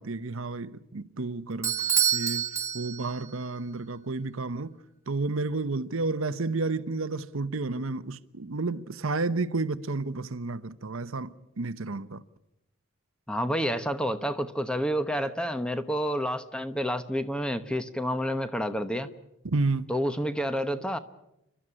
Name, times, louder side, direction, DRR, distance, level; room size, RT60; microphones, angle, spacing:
voice 1, 0.0-1.8 2.1-4.7 5.1-12.2 19.4-19.9, right 3 dB, 85° right, 0.9 m, -31 dB
Bell / Doorbell, 1.6-3.3, right 8 dB, 15° right, 1.6 m, -27 dB
voice 2, 13.3-19.1 19.9-21.0, equal, 5° left, 1.0 m, -29 dB
29.0 x 12.5 x 10.0 m
head